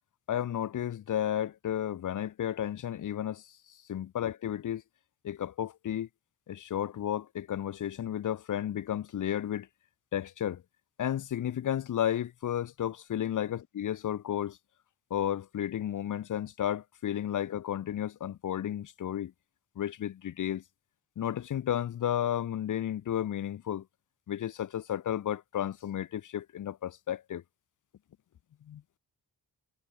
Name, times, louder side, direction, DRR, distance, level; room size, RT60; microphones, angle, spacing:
voice 1, 0.3-3.4 3.9-4.8 5.2-6.1 6.5-9.7 10.1-10.6 11.0-14.6 15.1-19.3 19.8-20.6 21.2-23.8 24.3-27.4 28.7-28.8, left 10 dB, 55° left, 0.8 m, -32 dB
wide cardioid pair, 170°, 37 cm